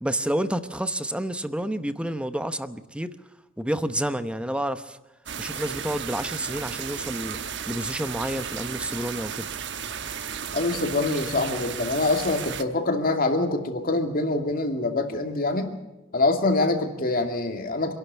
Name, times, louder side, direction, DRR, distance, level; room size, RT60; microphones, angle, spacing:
voice 1, 0.0-3.1 3.6-5.0 5.4-7.4 7.7-9.4, right 1 dB, 5° right, 12 dB, 0.8 m, -29 dB
sound 1, 5.3-12.6, right 7 dB, 65° right, 1.1 m, -34 dB
voice 2, 10.5-15.7 16.1-17.9, left 2 dB, 50° left, 5 dB, 2.5 m, -25 dB
26.5 x 12.0 x 9.5 m, 1.0 s
head